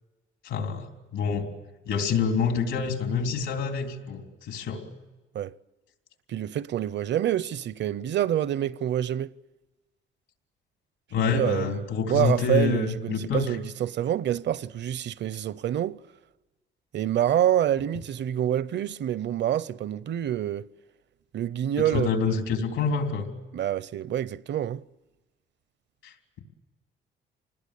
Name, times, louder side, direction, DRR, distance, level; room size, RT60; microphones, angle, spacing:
voice 1, 0.4-1.5 1.9-4.8 11.1-13.5 21.9-23.3 26.0-26.4, left 5 dB, 85° left, 3.7 m, -27 dB
voice 2, 6.3-9.3 11.2-11.8 12.1-16.0 16.9-20.7 21.3-22.4 23.5-24.8, right 11 dB, 60° right, 0.7 m, -27 dB
27.5 x 20.0 x 8.3 m
cardioid pair, 90°, 20 cm